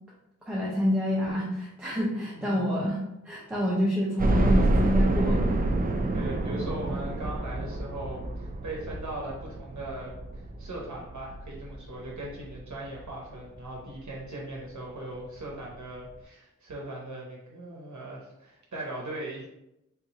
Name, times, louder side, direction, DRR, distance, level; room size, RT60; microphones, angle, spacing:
voice 1, 0.5-5.4, left 1 dB, 5° right, -6 dB, 0.7 m, -27 dB
voice 2, 2.3-2.7 6.1-19.4, right 1 dB, 70° right, -3 dB, 0.8 m, -39 dB
sound 1, 4.2-13.1 13.6-13.7 14.0-14.1 15.3-15.4 15.7-15.8, right 2 dB, 30° right, 0.3 m, -28 dB
3.6 x 2.8 x 2.8 m, 0.87 s
wide cardioid pair, 90°, 31 cm